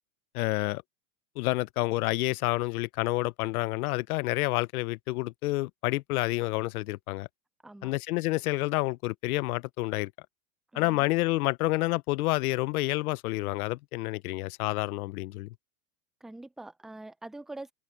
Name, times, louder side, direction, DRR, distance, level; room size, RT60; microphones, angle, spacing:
voice 1, 0.3-0.8 1.4-7.3 7.8-10.1 10.7-15.5, left 20 dB, 70° left, 0.8 m, -29 dB
voice 2, 7.6-7.9 10.7-11.1 16.2-17.7, right 2 dB, ahead, 0.4 m, -44 dB
supercardioid pair, 130°, 47 cm